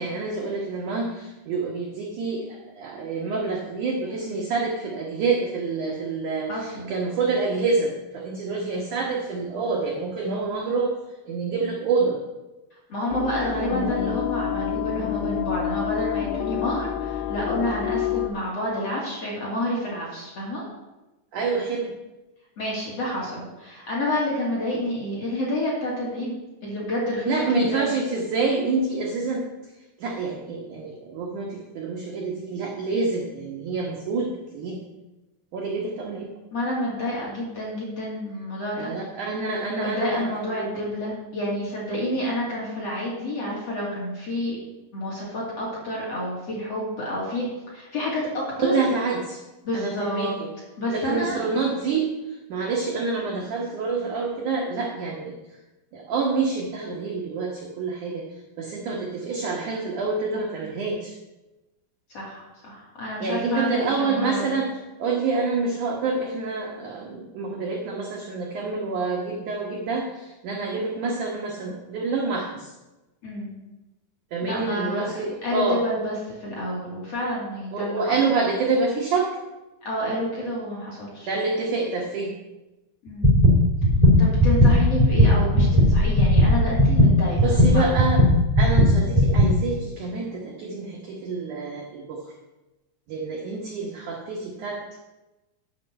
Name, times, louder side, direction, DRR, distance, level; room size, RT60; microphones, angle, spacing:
voice 1, 0.0-11.0 11.3-12.2 21.3-21.9 27.3-29.5 30.0-34.8 35.5-36.3 38.8-40.2 40.5-41.0 48.6-49.4 49.7-50.5 50.9-55.4 55.9-58.3 58.6-61.2 63.2-72.7 74.3-75.8 77.7-79.4 81.3-82.3 87.4-88.2 88.6-92.3 93.1-95.0, right 4 dB, 75° right, -1 dB, 1.8 m, -27 dB
voice 2, 6.5-6.9 12.9-20.6 22.6-27.9 36.5-38.9 39.7-44.6 44.9-48.9 49.6-50.3 50.8-51.4 62.1-64.6 73.2-73.5 74.4-75.1 75.4-78.0 79.8-81.3 83.0-83.4 84.2-87.5 87.7-87.9, left 1 dB, 40° left, -5 dB, 2.7 m, -29 dB
sound 1, 13.1-18.3, left 9 dB, 80° left, 2.4 m, -28 dB
sound 2, 83.2-89.5, equal, 40° right, 0.5 m, -16 dB
10.5 x 5.7 x 7.5 m, 1.1 s
omnidirectional pair, 5.5 m